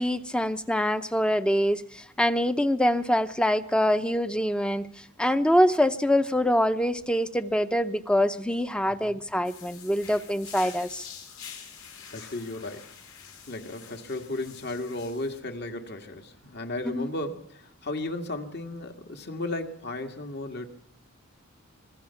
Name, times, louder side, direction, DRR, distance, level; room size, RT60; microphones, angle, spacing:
voice 1, 0.0-11.1 16.9-17.1, equal, 5° left, 11 dB, 0.8 m, -25 dB
sound 1, 9.4-15.4, left 7 dB, 75° left, 4.8 m, -46 dB
voice 2, 12.1-20.7, left 2 dB, 50° left, 5 dB, 2.0 m, -35 dB
26.0 x 21.0 x 5.9 m, 0.70 s
head